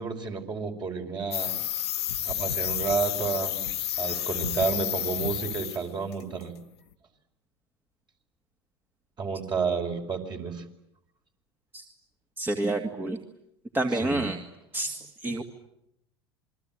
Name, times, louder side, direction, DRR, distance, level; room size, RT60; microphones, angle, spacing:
voice 1, 0.0-1.5 2.3-3.7 4.0-6.5 9.2-10.6 14.0-14.3, right 5 dB, 35° right, 3 dB, 5.4 m, -30 dB
sound 1, 1.3-5.8 6.1-6.4, left 11 dB, 80° left, 1.5 m, -30 dB
voice 2, 12.4-13.2 13.7-14.4 14.7-15.4, right 2 dB, 15° right, 4 dB, 2.4 m, -28 dB
28.0 x 22.0 x 9.3 m, 0.80 s
hypercardioid pair, 85°, 13 cm